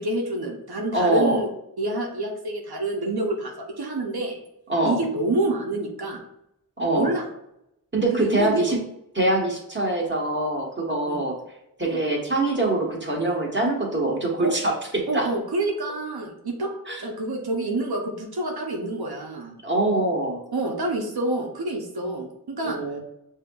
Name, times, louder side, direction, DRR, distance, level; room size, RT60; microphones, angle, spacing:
voice 1, 0.0-1.5 1.8-4.4 4.8-6.2 6.9-7.2 8.1-8.8 11.0-11.3 11.8-12.0 14.4-14.5 15.1-16.7 17.0-19.5 20.5-22.8, right 2 dB, 90° right, 1 dB, 0.8 m, -27 dB
voice 2, 0.9-1.4 4.7-5.0 6.8-7.1 7.9-8.8 9.1-11.3 11.8-15.3 16.9-17.0 19.6-20.4 22.6-23.0, right 2 dB, 30° right, -2 dB, 1.2 m, -24 dB
6.7 x 2.8 x 2.3 m, 0.80 s
wide cardioid pair, 45°, 37 cm